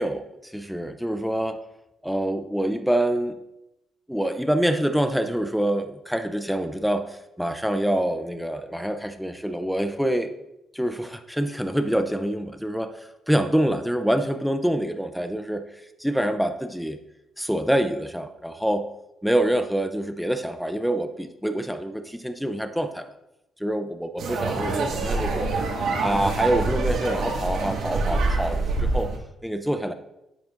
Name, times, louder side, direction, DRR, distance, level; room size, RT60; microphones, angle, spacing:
voice 1, 0.0-1.6 2.0-3.4 4.1-10.3 10.7-15.6 16.0-17.0 17.4-18.9 19.2-23.1 23.6-25.5 26.0-29.1 29.4-29.9, right 1 dB, ahead, 8 dB, 0.5 m, -26 dB
sound 1, 24.2-29.2, right 3 dB, 70° right, 1.8 m, -25 dB
10.0 x 8.0 x 2.5 m, 0.90 s
cardioid pair, 90°, 0 cm